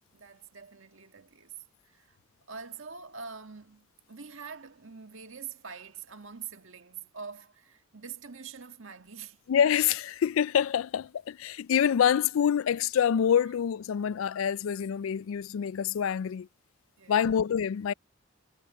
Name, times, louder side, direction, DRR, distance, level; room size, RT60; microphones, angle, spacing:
voice 1, 0.1-1.6 1.8-2.2 2.5-9.4 17.0-17.4, right 6 dB, 70° right, 1.7 m, -45 dB
voice 2, 9.5-16.5 17.1-17.9, left 8 dB, 75° left, 0.3 m, -26 dB
head